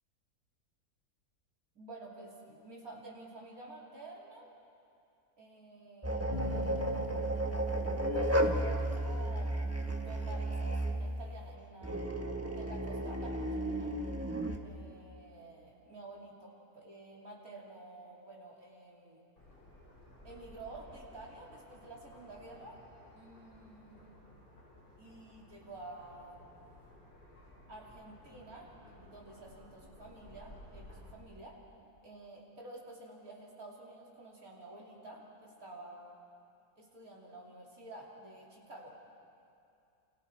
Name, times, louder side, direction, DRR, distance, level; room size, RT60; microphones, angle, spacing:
voice 1, 1.8-4.5 5.4-6.9 8.0-12.0 12.5-13.9 14.6-19.3 20.2-22.8 23.1-24.0 25.0-26.4 27.7-31.6 32.0-36.1 36.8-38.9, right 2 dB, 70° right, -3 dB, 3.6 m, -50 dB
sound 1, 6.0-11.1 11.8-14.6, right 1 dB, 10° right, 1.4 m, -33 dB
sound 2, 6.3-8.5, left 7 dB, 55° left, 0.8 m, -41 dB
sound 3, 19.4-31.1, left 1 dB, 85° left, 6.0 m, -56 dB
29.5 x 28.0 x 4.5 m, 2.6 s
omnidirectional pair, 1.6 m